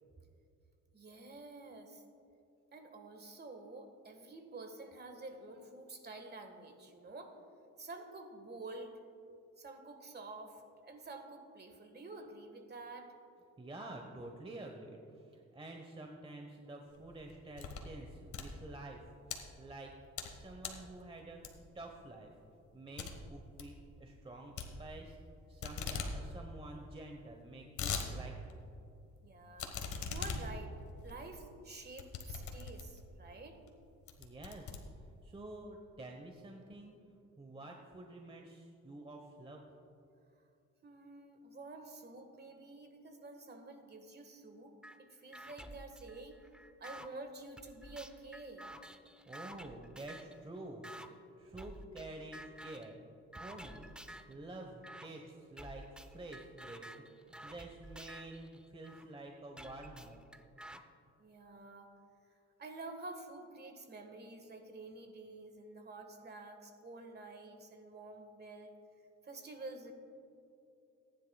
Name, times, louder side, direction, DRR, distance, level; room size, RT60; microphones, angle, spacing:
voice 1, 0.9-2.0 2.7-7.3 7.8-9.0 9.6-13.1 29.2-30.7 31.0-33.6 40.8-46.4 46.8-48.7 61.2-61.9 62.3-68.7 69.2-69.9, right 2 dB, 35° right, 5 dB, 1.6 m, -49 dB
voice 2, 13.6-19.0 19.6-19.9 20.3-21.4 21.7-22.3 22.7-25.2 25.5-28.6 34.2-34.8 35.2-36.9 37.4-39.7 49.2-50.9 51.4-53.1 53.3-53.9 54.3-60.2, right 2 dB, 20° right, 2 dB, 1.0 m, -49 dB
sound 1, 17.0-17.9 18.2-19.4 19.9-20.3 20.6-20.9 21.4-21.8 22.2-22.3 22.6-22.7 23.0-23.1 23.4-23.7 24.6-25.3 25.6-26.1 26.5-26.6 26.7-26.8 27.4-28.1 28.5-28.6 29.6-33.1 33.6-33.8 34.1-35.3, left 6 dB, 75° left, 1.5 m, -41 dB
sound 2, 44.8-45.0 45.3-47.1 47.6-50.4 50.8-51.1 51.6-52.1 52.3-52.9 53.3-54.3 54.8-55.1 55.6-59.0 59.6-60.8, right 1 dB, 5° right, 0.6 m, -51 dB
18.5 x 10.5 x 2.3 m, 2.7 s
cardioid pair, 90°, 30 cm